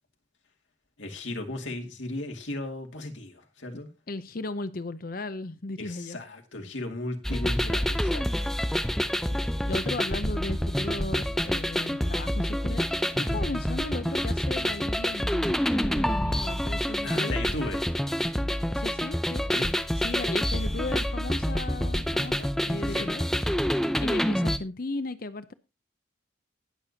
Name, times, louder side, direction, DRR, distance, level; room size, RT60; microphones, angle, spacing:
voice 1, 1.0-3.9 5.8-8.3 13.1-13.4 17.0-17.8 19.5-19.7 22.9-23.1, left 2 dB, 80° left, 2.3 m, -35 dB
voice 2, 4.1-6.2 6.6-6.7 9.4-17.4 18.7-19.5 20.0-23.2 24.0-25.5, left 2 dB, 50° left, 0.7 m, -36 dB
sound 1, 7.2-24.6, equal, ahead, 0.6 m, -27 dB
19.5 x 6.8 x 2.8 m
head